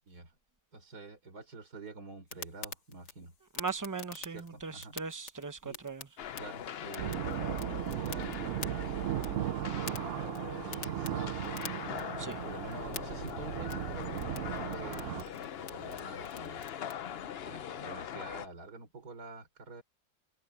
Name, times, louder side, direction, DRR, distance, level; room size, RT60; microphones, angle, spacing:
voice 1, 0.7-3.3 4.3-5.0 5.6-5.8 6.4-10.0 10.6-16.7 17.4-19.8, right 3 dB, 65° right, 5.6 m, -48 dB
sound 1, 2.3-16.9, left 5 dB, 80° left, 2.8 m, -49 dB
voice 2, 3.6-6.1 12.2-12.4, right 4 dB, 20° right, 0.6 m, -39 dB
sound 2, 6.2-18.5, left 9 dB, 60° left, 0.6 m, -42 dB
sound 3, 7.0-15.2, right 13 dB, 80° right, 0.6 m, -37 dB
omnidirectional pair, 1.8 m